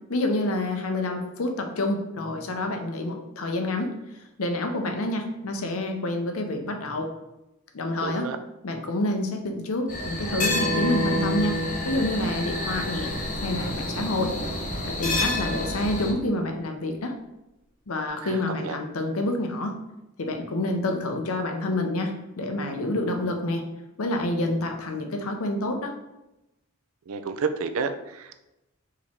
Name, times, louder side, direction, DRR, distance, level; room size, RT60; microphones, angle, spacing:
voice 1, 0.1-3.9 4.4-7.1 7.7-8.3 8.6-11.6 11.8-13.1 13.4-14.4 14.9-17.2 17.9-19.8 20.2-23.6 24.0-25.9, left 1 dB, 75° left, 4 dB, 0.7 m, -28 dB
voice 2, 8.0-8.4 18.2-18.8 27.1-28.4, right 5 dB, 70° right, 9 dB, 0.4 m, -30 dB
sound 1, 9.9-16.1, left 2 dB, 35° left, 0.9 m, -29 dB
Bowed string instrument, 10.2-16.3, equal, 15° left, 1.3 m, -33 dB
4.7 x 3.0 x 3.5 m, 0.93 s
head